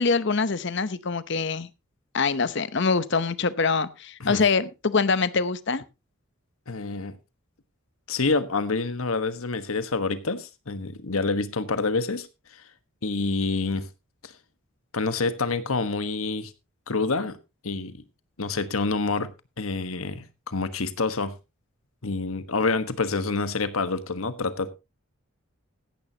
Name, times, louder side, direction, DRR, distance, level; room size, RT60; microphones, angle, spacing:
voice 1, 0.0-1.7 2.1-5.8, left 4 dB, 55° left, 0.8 m, -24 dB
voice 2, 6.7-7.2 8.1-12.3 13.0-13.8 14.2-14.3 14.9-16.5 16.9-17.4 17.6-18.0 18.4-19.3 19.6-21.3 22.0-24.7, left 3 dB, 80° left, 1.3 m, -27 dB
15.5 x 11.0 x 2.8 m
head